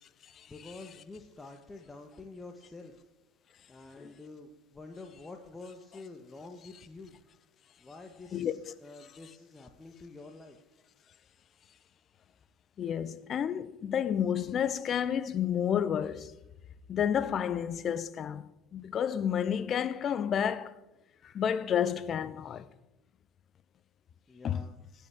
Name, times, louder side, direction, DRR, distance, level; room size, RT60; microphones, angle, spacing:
voice 1, 0.5-3.1 3.7-7.2 7.8-10.6 24.3-24.9, left 3 dB, 20° left, 1.5 m, -48 dB
voice 2, 12.8-16.3 16.9-20.7 21.3-22.6 24.4-24.6, left 8 dB, 40° left, 0.8 m, -30 dB
24.5 x 8.6 x 3.7 m
hypercardioid pair, 70°, 0 cm